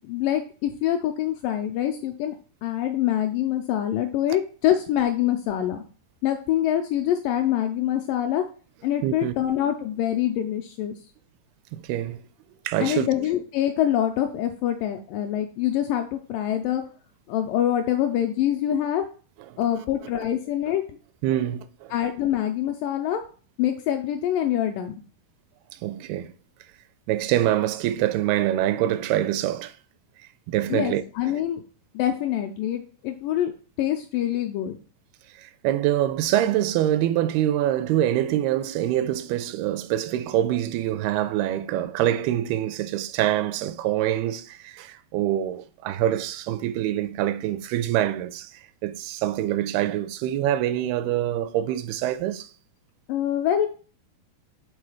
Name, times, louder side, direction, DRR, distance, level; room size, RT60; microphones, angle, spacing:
voice 1, 0.0-2.4 2.6-5.8 6.2-8.5 8.8-11.0 12.8-16.8 17.3-19.1 19.6-21.0 21.9-23.2 23.6-24.9 30.7-31.6 31.9-33.5 33.8-34.8 53.1-53.7, left 11 dB, 85° left, 2.0 m, -25 dB
voice 2, 9.0-9.3 11.7-12.2 12.7-13.1 21.2-21.9 25.8-26.3 27.1-29.7 30.5-31.0 35.4-48.5 48.8-52.5, right 12 dB, 85° right, 2.5 m, -25 dB
7.8 x 3.7 x 4.8 m
omnidirectional pair, 4.4 m